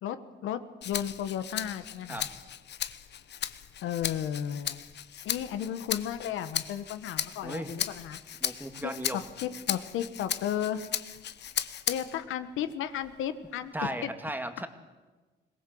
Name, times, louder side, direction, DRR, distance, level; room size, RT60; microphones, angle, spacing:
voice 1, 0.0-2.3 3.8-4.8 5.2-8.2 8.8-10.8 11.9-14.1, left 10 dB, 85° left, 11 dB, 1.2 m, -34 dB
Rattle (instrument), 0.8-12.3 12.7-13.9, left 10 dB, 60° left, 1.0 m, -36 dB
voice 2, 8.4-9.2 13.7-14.7, right 1 dB, 10° right, 8 dB, 2.0 m, -35 dB
21.5 x 18.5 x 7.7 m, 1.3 s
cardioid pair, 90°, 20 cm